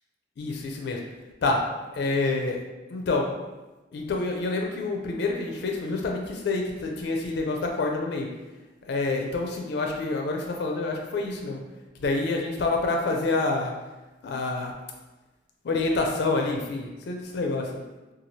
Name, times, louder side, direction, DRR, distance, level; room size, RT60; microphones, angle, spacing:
voice 1, 0.4-1.0 1.4-1.6 1.9-2.6 2.9-3.3 3.9-8.3 8.9-11.6 12.0-13.7 14.2-14.7 15.6-17.8, left 3 dB, 65° left, 1 dB, 0.4 m, -27 dB
2.7 x 2.3 x 3.0 m, 1.1 s
head